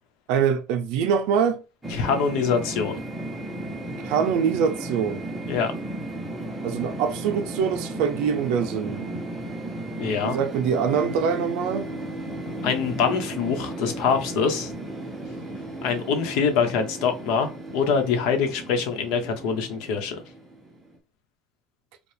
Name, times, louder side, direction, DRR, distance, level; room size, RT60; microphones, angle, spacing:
voice 1, 0.3-1.6 4.0-5.2 6.6-9.2 10.2-11.9, right 7 dB, 70° right, 0.5 m, -24 dB
sound 1, 1.8-21.0, right 1 dB, 5° right, 0.8 m, -35 dB
voice 2, 1.9-3.0 5.5-5.7 10.0-10.4 12.6-14.7 15.8-20.2, left 6 dB, 70° left, 1.0 m, -24 dB
4.7 x 2.3 x 3.3 m
cardioid pair, 175°, 0 cm